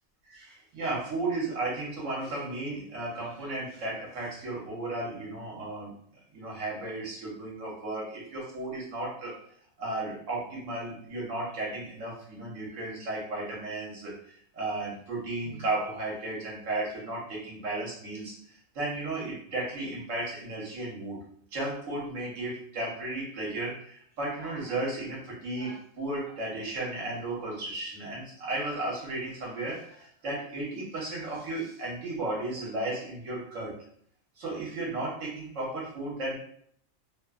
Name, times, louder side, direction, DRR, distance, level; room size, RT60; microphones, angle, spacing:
voice 1, 0.3-5.9 6.3-9.4 9.8-21.2 21.5-33.7 34.4-36.4, right 2 dB, 70° right, -4 dB, 1.3 m, -34 dB
3.0 x 2.2 x 2.3 m, 0.63 s
omnidirectional pair, 1.3 m